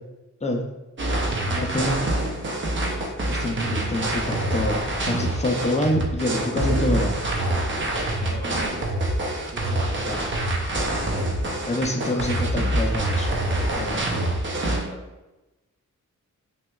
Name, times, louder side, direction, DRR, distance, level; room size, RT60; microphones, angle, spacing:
sound 1, 1.0-14.8, right 1 dB, 40° right, 0.5 m, -26 dB
voice 1, 1.5-2.2 8.2-8.7 9.4-10.1 12.0-12.2 13.8-14.0 14.6-15.0, right 1 dB, 55° right, -2 dB, 0.9 m, -38 dB
voice 2, 3.3-7.1 10.1-10.2 11.7-13.3 13.7-14.0, left 1 dB, 20° left, 2 dB, 0.4 m, -26 dB
5.7 x 2.3 x 2.2 m, 1.1 s
wide cardioid pair, 140°, 32 cm